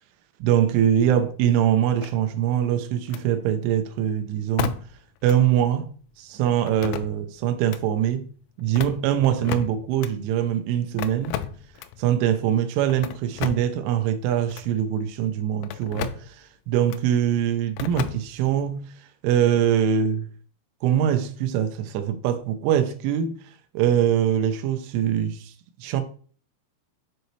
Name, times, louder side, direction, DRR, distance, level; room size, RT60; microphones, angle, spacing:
voice 1, 0.4-4.8 5.2-5.9 6.2-8.3 8.6-11.4 12.0-16.4 16.7-18.9 19.2-20.3 20.8-23.3 23.7-25.5 25.8-26.0, right 10 dB, 85° right, 3.1 m, -23 dB
sound 1, 2.0-2.6 3.1-3.3 4.6-5.0 5.3-5.4 6.7-7.3 7.6-7.8 8.6-10.1 11.0-12.0 12.9-13.8 14.5-14.7 15.6-16.3 16.9-17.1 17.8-18.6, left 11 dB, 90° left, 3.1 m, -33 dB
7.6 x 5.2 x 3.1 m
omnidirectional pair, 5.6 m